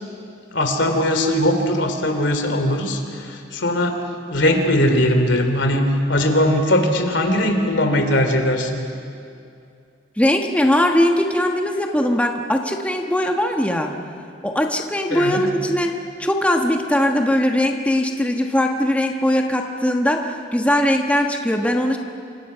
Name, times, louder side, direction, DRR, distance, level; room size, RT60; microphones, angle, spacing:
voice 1, 0.5-4.0 4.3-8.8 15.1-15.4, left 1 dB, 75° left, 5 dB, 3.0 m, -19 dB
voice 2, 10.2-13.9 14.4-22.0, left 1 dB, 5° left, 2 dB, 1.2 m, -20 dB
27.5 x 25.5 x 5.7 m, 2.4 s
head